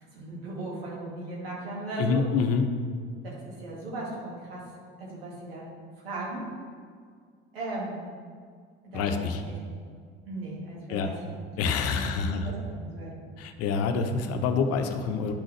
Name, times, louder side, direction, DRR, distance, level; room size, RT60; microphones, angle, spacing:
voice 1, 0.1-2.3 3.2-4.7 5.0-5.7 6.0-6.4 7.5-8.0 8.8-9.7 10.3-11.2 11.9-13.2, right 2 dB, 75° right, -4 dB, 2.1 m, -37 dB
voice 2, 2.0-2.6 8.9-9.4 10.9-11.1 11.6-12.5 13.4-15.3, left 5 dB, 55° left, 6 dB, 0.8 m, -27 dB
10.5 x 6.1 x 3.2 m, 2.1 s
figure-of-eight pair, 55°, 30 cm